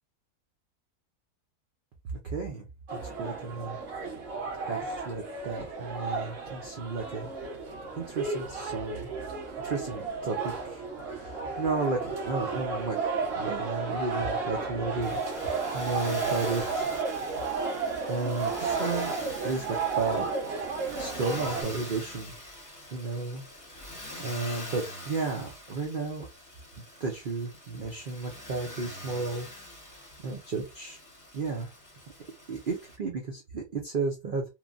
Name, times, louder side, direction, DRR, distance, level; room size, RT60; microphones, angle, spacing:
voice 1, 2.2-2.7 2.9-3.8 4.7-7.3 8.0-9.1 9.6-13.0 13.4-16.9 18.1-19.1 19.4-20.3 21.0-22.3 22.9-23.4 24.2-26.3 27.0-29.5 30.2-31.0 31.3-31.7 32.5-34.5, right 4 dB, 75° right, 1 dB, 0.4 m, -33 dB
sound 1, 2.9-21.6, right 4 dB, 55° right, 1.2 m, -33 dB
Motor vehicle (road), 15.0-33.0, left 1 dB, 15° left, 0.8 m, -44 dB
3.1 x 2.2 x 2.4 m, 0.23 s
omnidirectional pair, 1.7 m